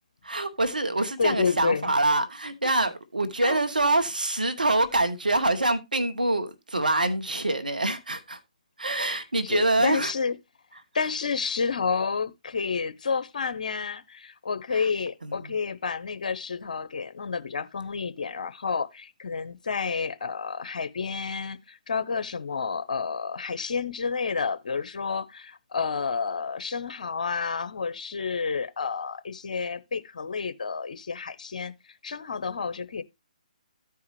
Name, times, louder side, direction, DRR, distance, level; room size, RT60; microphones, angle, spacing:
voice 1, 0.2-8.4 8.8-10.1 14.7-14.9 15.2-15.6, right 2 dB, 90° right, 1.2 m, -25 dB
voice 2, 1.2-1.9 2.6-2.8 3.4-3.6 9.4-10.3 10.9-31.7 32.0-33.0, left 5 dB, 65° left, 0.8 m, -30 dB
14.0 x 4.8 x 3.0 m
figure-of-eight pair, 140°, 4 cm